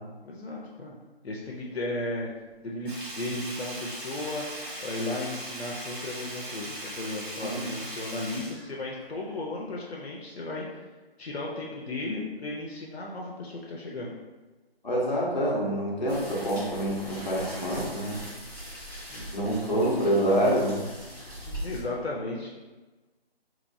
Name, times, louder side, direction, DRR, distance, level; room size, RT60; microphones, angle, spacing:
voice 1, 0.2-1.0 1.2-2.3 2.6-4.5 4.8-10.7 11.2-14.1 19.1-20.4 21.2-22.5, left 2 dB, 80° left, -3 dB, 0.6 m, -35 dB
Sink (filling or washing), 2.9-9.4 9.7-9.8, right 1 dB, 55° right, 0.8 m, -39 dB
voice 2, 14.8-18.2 19.3-20.8, equal, 45° left, -6 dB, 0.9 m, -26 dB
sound 1, 16.1-21.8, equal, 5° right, 1.5 m, -41 dB
3.0 x 2.9 x 2.6 m, 1.2 s
figure-of-eight pair, 175°, 31 cm